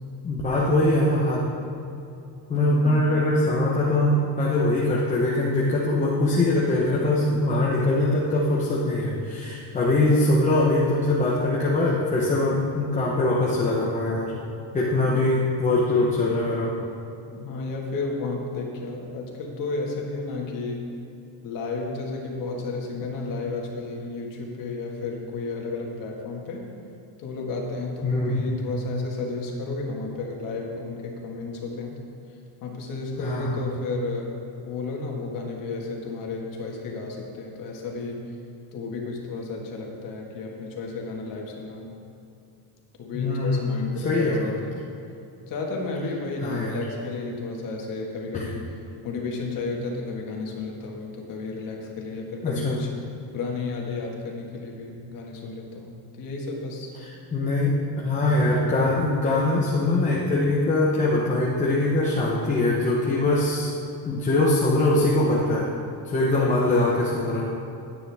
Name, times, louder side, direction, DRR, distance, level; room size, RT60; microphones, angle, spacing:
voice 1, 0.2-1.4 2.5-14.3 14.7-16.7 28.0-28.5 33.2-33.6 43.1-43.8 44.0-44.5 46.4-46.8 48.3-48.4 52.4-52.8 57.3-63.7 64.1-65.7 66.0-67.5, left 2 dB, 15° left, -5 dB, 0.9 m, -22 dB
voice 2, 2.6-3.1 17.3-20.9 21.4-26.6 27.2-31.9 32.3-34.3 34.6-38.2 38.7-41.9 43.0-44.9 45.5-48.6 49.0-52.9 53.3-56.9 58.2-58.7 66.2-66.6, left 3 dB, 50° left, 0 dB, 1.9 m, -32 dB
16.0 x 9.5 x 3.5 m, 2.7 s
cardioid pair, 180°, 43 cm